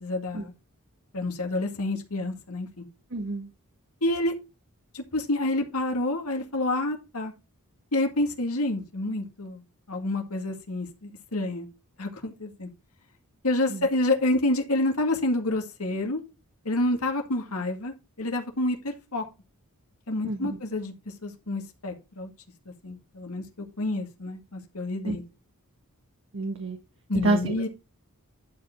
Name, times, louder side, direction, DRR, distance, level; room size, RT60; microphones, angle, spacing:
voice 1, 0.0-0.5 1.1-2.9 4.0-4.3 4.9-7.3 7.9-9.6 9.9-11.7 12.0-12.7 13.4-16.2 16.7-19.2 20.1-20.9 21.2-22.3 22.7-25.2 27.1-27.7, left 2 dB, 75° left, 4 dB, 2.1 m, -28 dB
voice 2, 3.1-3.5 13.7-13.9 20.2-20.6 25.0-25.2 26.3-26.8 27.2-27.6, right 2 dB, 60° right, 3 dB, 1.6 m, -28 dB
11.0 x 5.2 x 3.8 m, 0.28 s
head